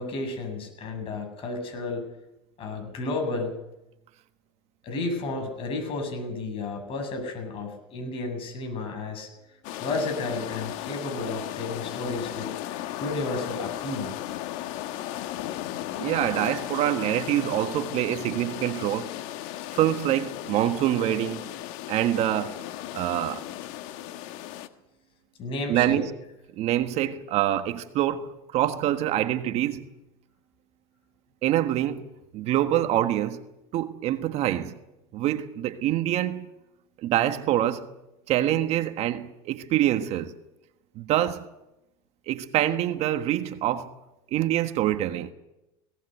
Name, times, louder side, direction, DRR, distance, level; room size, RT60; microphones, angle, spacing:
voice 1, 0.0-2.1 2.6-3.5 4.8-9.3 9.8-12.5 13.0-14.1 25.4-26.0, left 2 dB, 45° left, 7.9 m, -32 dB
sound 1, 9.6-24.7, left 13 dB, 70° left, 1.5 m, -35 dB
voice 2, 16.0-19.1 19.7-21.4 21.9-22.6 22.9-23.4 25.7-26.1 26.5-29.8 31.4-32.1 32.3-33.4 33.7-34.8 35.1-36.5 37.0-37.9 38.3-40.3 40.9-41.5 42.3-43.9 44.3-45.3, right 12 dB, 55° right, 1.5 m, -25 dB
19.0 x 18.0 x 8.1 m
supercardioid pair, 110°, 13 cm